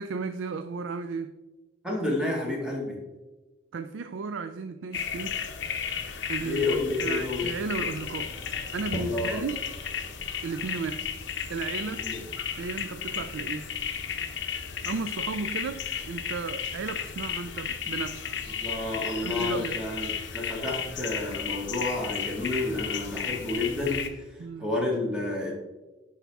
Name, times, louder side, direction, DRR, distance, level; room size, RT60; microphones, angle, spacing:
voice 1, 0.0-1.3 3.7-5.3 6.3-8.3 8.7-9.6 10.4-12.1 12.6-13.7 14.8-18.3 19.2-19.8 24.4-24.7, right 4 dB, 85° right, 0.4 m, -34 dB
voice 2, 1.8-3.0 6.4-7.5 8.9-9.4 11.9-12.2 18.6-25.5, left 2 dB, 5° right, 1.7 m, -30 dB
sound 1, 4.9-24.1, left 7 dB, 70° left, 0.8 m, -34 dB
9.9 x 4.8 x 3.5 m
head